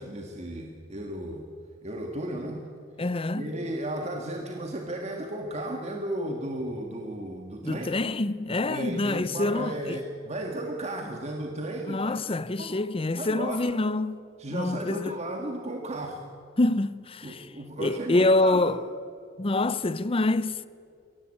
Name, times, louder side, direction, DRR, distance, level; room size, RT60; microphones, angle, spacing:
voice 1, 0.0-1.5 1.8-2.7 3.3-7.9 8.7-12.2 12.6-12.7 13.2-13.7 14.4-16.3 17.2-18.8, right 1 dB, 35° right, 1.7 m, -34 dB
voice 2, 3.0-3.6 7.6-10.0 11.9-14.2 14.5-15.1 16.6-17.5 17.8-18.8 19.4-20.7, left 2 dB, 30° left, 0.6 m, -26 dB
23.5 x 17.5 x 8.7 m
head